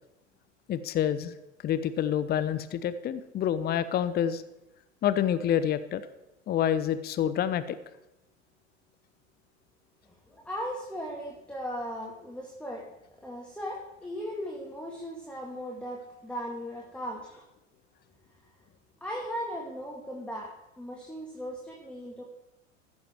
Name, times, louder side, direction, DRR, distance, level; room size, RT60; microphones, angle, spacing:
voice 1, 0.7-1.3 1.6-4.4 5.0-6.0 6.5-7.8, left 10 dB, 25° left, 13 dB, 0.7 m, -27 dB
voice 2, 10.3-12.9 13.2-17.4 19.0-20.5 20.8-22.2, equal, 5° left, -2 dB, 2.0 m, -37 dB
15.0 x 7.0 x 4.5 m, 0.92 s
hypercardioid pair, 90°, 38 cm